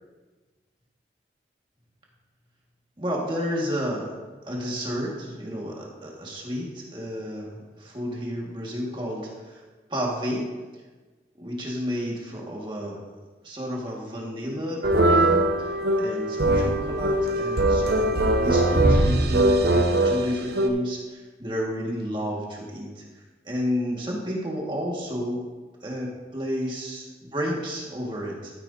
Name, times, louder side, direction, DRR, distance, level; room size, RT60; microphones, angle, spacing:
voice 1, 3.0-4.1 4.4-9.6 9.9-10.5 11.4-13.0 13.4-23.0 23.4-25.4 25.8-28.5, equal, 25° right, -3 dB, 1.8 m, -31 dB
sound 1, 14.8-20.7, right 1 dB, 65° right, 0.8 m, -21 dB
13.5 x 8.9 x 2.8 m, 1.3 s
head